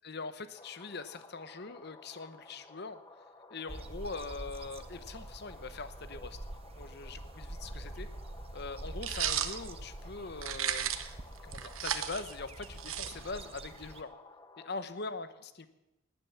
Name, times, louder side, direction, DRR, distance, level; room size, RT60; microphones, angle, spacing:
voice 1, 0.0-3.0 3.5-6.4 6.8-8.1 8.5-11.0 11.4-14.1 14.6-15.7, left 3 dB, 55° left, 12 dB, 0.9 m, -42 dB
sound 1, 0.6-14.8, left 2 dB, 20° left, 0.9 m, -55 dB
sound 2, 3.7-14.0, right 2 dB, 30° right, 0.8 m, -46 dB
sound 3, 9.0-9.5 10.4-11.1 11.5-13.5, right 10 dB, 85° right, 1.0 m, -34 dB
18.0 x 9.1 x 7.0 m, 0.95 s
head